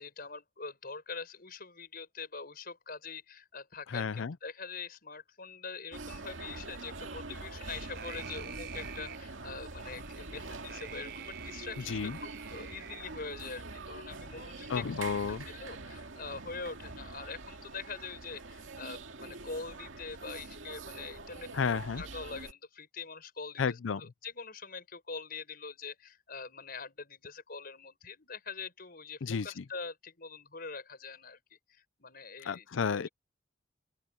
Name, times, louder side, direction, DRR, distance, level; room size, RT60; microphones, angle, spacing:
voice 1, 0.0-33.1, left 4 dB, 50° left, 5.6 m, -44 dB
voice 2, 3.9-4.3 11.9-12.2 14.7-15.4 21.5-22.0 23.6-24.0 29.2-29.5 32.4-33.1, left 6 dB, 80° left, 0.5 m, -32 dB
sound 1, 5.9-22.5, right 3 dB, 80° right, 2.3 m, -45 dB
sound 2, 7.7-9.2 9.8-13.0, right 6 dB, 55° right, 7.2 m, -47 dB
open air
head